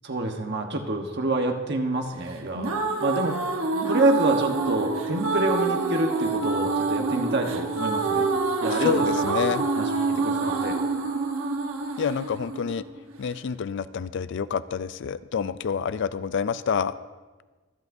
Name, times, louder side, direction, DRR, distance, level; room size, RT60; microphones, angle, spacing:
voice 1, 0.0-3.4 3.9-8.3 8.6-10.8, right 2 dB, 55° right, 4 dB, 1.1 m, -27 dB
sound 1, 2.3-13.3, right 3 dB, 75° right, 1.2 m, -27 dB
voice 2, 8.7-9.6 12.0-12.8 13.2-16.9, left 6 dB, 60° left, 15 dB, 0.4 m, -28 dB
24.5 x 8.3 x 2.7 m, 1.3 s
head